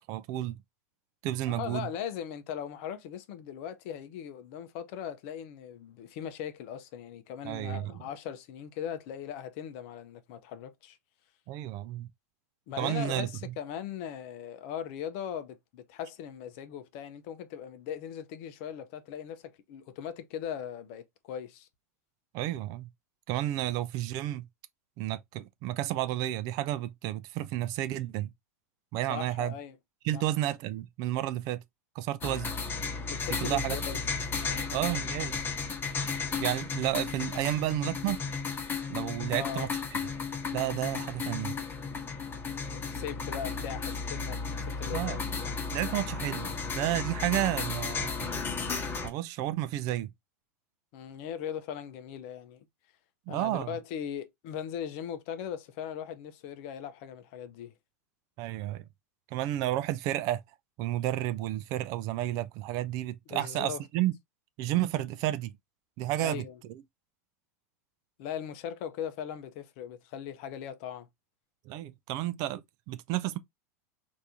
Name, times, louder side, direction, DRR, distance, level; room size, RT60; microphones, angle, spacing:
voice 1, 0.1-0.6 1.2-1.9 7.4-7.9 11.5-12.1 12.8-13.3 22.3-22.9 23.3-24.5 25.0-28.3 28.9-29.5 30.0-31.6 32.0-32.5 33.4-33.8 34.7-35.4 36.4-38.2 38.9-39.7 40.5-41.5 44.9-45.2 45.7-48.3 49.0-50.1 53.3-53.8 58.4-58.8 59.3-60.4 60.8-64.1 64.6-65.5 66.0-66.8 71.7-73.4, right 14 dB, 45° right, 0.4 m, -31 dB
voice 2, 1.5-11.0 12.7-21.7 29.1-29.8 30.1-30.2 33.1-34.0 34.4-34.7 39.3-39.7 42.7-45.8 50.9-52.6 53.3-57.7 63.3-63.8 66.2-66.6 68.2-71.1, left 9 dB, 50° left, 0.6 m, -39 dB
sound 1, 32.2-49.1, left 5 dB, 25° left, 1.0 m, -34 dB
3.3 x 2.6 x 2.7 m
hypercardioid pair, 95°, 9 cm